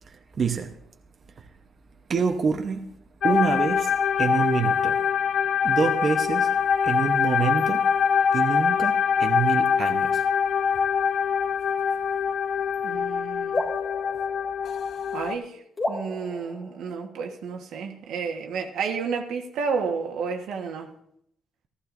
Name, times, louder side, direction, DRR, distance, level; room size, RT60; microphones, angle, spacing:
voice 1, 0.1-0.7 2.1-2.9 3.2-5.1 5.6-6.5 6.8-7.9 8.3-10.2, right 5 dB, 45° right, 0.9 m, -27 dB
sound 1, 3.2-15.4, left 7 dB, 60° left, 0.4 m, -24 dB
voice 2, 12.8-13.6 15.1-15.6 15.9-20.9, right 5 dB, 80° right, 1.3 m, -31 dB
sound 2, 13.5-15.2 15.8-17.5, left 2 dB, 30° left, 2.1 m, -33 dB
14.5 x 14.0 x 2.6 m
cardioid pair, 90°, 0 cm